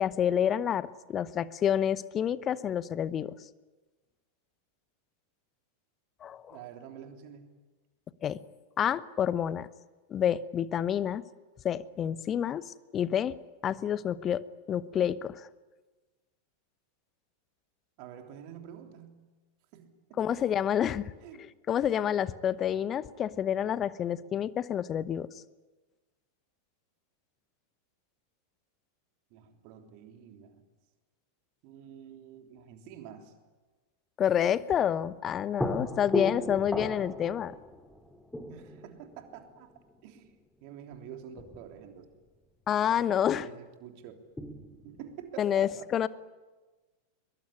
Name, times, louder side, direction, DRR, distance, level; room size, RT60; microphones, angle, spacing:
voice 1, 0.0-3.3 6.2-6.6 8.2-8.4 8.8-9.7 10.1-11.2 11.6-13.3 13.6-14.4 14.7-15.5 20.2-21.1 21.4-25.3 34.2-37.5 42.7-43.5 45.4-46.1, left 9 dB, 25° left, 17 dB, 0.9 m, -28 dB
voice 2, 6.5-7.5 18.0-19.3 19.7-20.4 21.2-21.5 29.3-30.7 31.6-33.3 36.4-36.7 38.5-39.7 40.0-42.1 42.7-44.1 44.8-45.9, right 9 dB, 45° right, 5 dB, 3.3 m, -48 dB
sound 1, 35.6-40.1 40.9-41.0 41.4-42.1 44.4-45.1, left 1 dB, 5° left, 2.1 m, -37 dB
22.5 x 22.0 x 9.8 m, 1.3 s
figure-of-eight pair, 90°, 0 cm